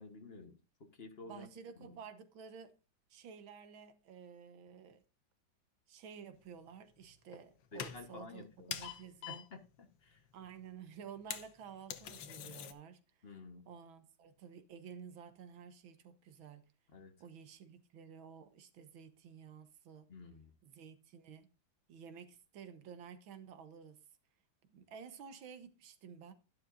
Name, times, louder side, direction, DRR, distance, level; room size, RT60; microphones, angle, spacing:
voice 1, 0.0-1.5 1.8-2.0 7.7-8.9 9.3-9.6 10.0-10.2 13.2-13.6 16.9-17.1 20.1-20.5, left 3 dB, 35° left, 1.2 m, -51 dB
voice 2, 1.3-2.8 3.1-5.0 5.9-9.5 10.3-13.0 13.7-16.7 17.2-20.1 20.6-21.5 21.9-24.0 24.7-26.3, right 7 dB, 85° right, 1.9 m, -52 dB
sound 1, 6.7-7.4 7.7-8.3 8.7-9.6 9.9-10.0 10.2-10.3 10.4-10.6 11.0-12.7, left 9 dB, 70° left, 1.6 m, -44 dB
11.5 x 11.0 x 2.5 m
omnidirectional pair, 2.1 m